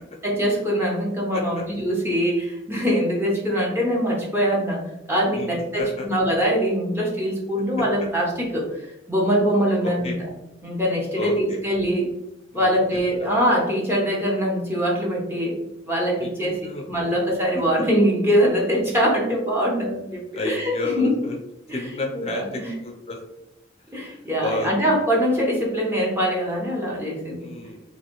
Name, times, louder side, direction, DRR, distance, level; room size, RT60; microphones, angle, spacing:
voice 1, 0.2-4.8 5.1-10.1 10.6-12.1 12.5-15.6 15.9-16.6 16.9-21.1 22.1-22.7 23.9-27.5, equal, 15° right, -3 dB, 0.7 m, -23 dB
voice 2, 1.3-1.6 5.3-6.1 7.8-7.9 9.8-10.2 11.1-11.6 12.5-12.8 13.2-13.3 16.2-17.2 17.5-17.8 20.3-21.4 21.7-23.2 23.9-24.9 27.4-27.8, left 2 dB, 35° left, 0 dB, 0.5 m, -32 dB
3.2 x 2.5 x 2.9 m, 0.87 s
head